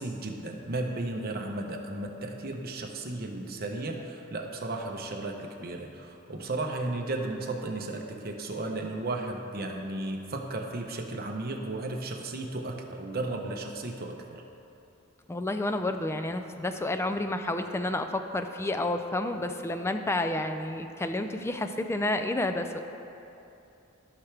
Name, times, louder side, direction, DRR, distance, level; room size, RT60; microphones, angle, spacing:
voice 1, 0.0-14.4, right 2 dB, 45° right, 2 dB, 0.9 m, -34 dB
voice 2, 15.3-22.8, left 2 dB, 10° left, 7 dB, 0.4 m, -30 dB
14.5 x 5.8 x 3.4 m, 2.8 s
head